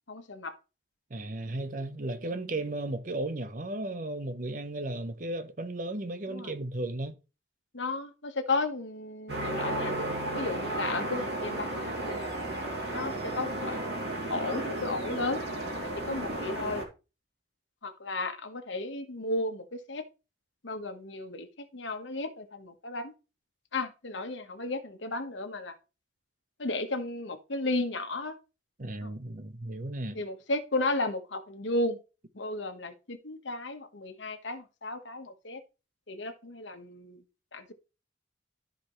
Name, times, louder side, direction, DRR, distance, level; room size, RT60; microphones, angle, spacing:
voice 1, 0.1-0.6 1.6-1.7 6.3-6.5 7.7-10.0 10.3-12.2 12.9-13.8 14.1-15.4 15.8-16.8 17.8-20.0 20.6-21.5 21.7-23.1 23.7-25.8 26.6-28.4 29.0-29.1 30.1-32.0 32.3-35.6 36.1-37.2 37.5-37.7, left 2 dB, 90° left, 1.4 m, -34 dB
voice 2, 1.1-7.2 28.8-30.2, right 2 dB, 45° right, 0.9 m, -35 dB
sound 1, 9.3-16.8, right 1 dB, 65° right, 2.8 m, -33 dB
13.5 x 5.2 x 3.2 m
head